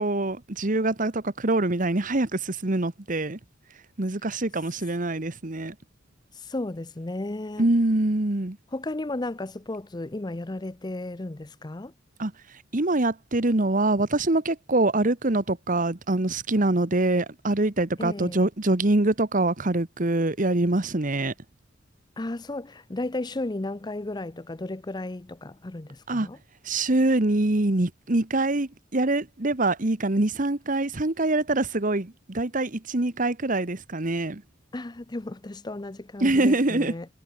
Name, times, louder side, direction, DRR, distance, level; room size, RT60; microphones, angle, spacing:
voice 1, 0.0-3.4 4.0-5.7 7.6-8.6 12.2-12.3 12.7-21.3 26.1-26.3 26.6-34.4 36.2-36.9, right 2 dB, 40° right, 1.3 m, -24 dB
voice 2, 6.3-7.7 8.7-11.9 18.0-18.4 22.2-26.4 34.7-37.1, left 2 dB, 20° left, 0.6 m, -34 dB
head